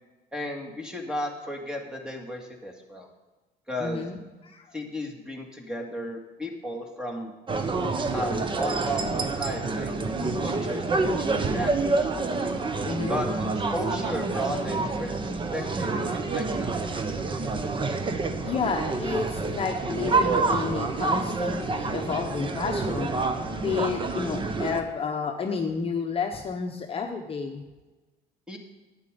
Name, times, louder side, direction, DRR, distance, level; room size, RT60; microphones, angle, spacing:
voice 1, 0.3-3.1 3.7-4.1 4.7-7.3 8.1-12.1 13.1-15.2 15.5-17.0 28.5-28.6, equal, 5° right, 1 dB, 2.1 m, -34 dB
voice 2, 3.8-4.2 4.5-4.6 12.9-13.2 18.4-23.1 23.6-27.6, left 5 dB, 35° left, 2 dB, 1.0 m, -30 dB
sound 1, 7.5-24.8, right 3 dB, 30° right, 1.0 m, -28 dB
11.0 x 8.9 x 5.2 m, 1.2 s
cardioid pair, 110°, 17 cm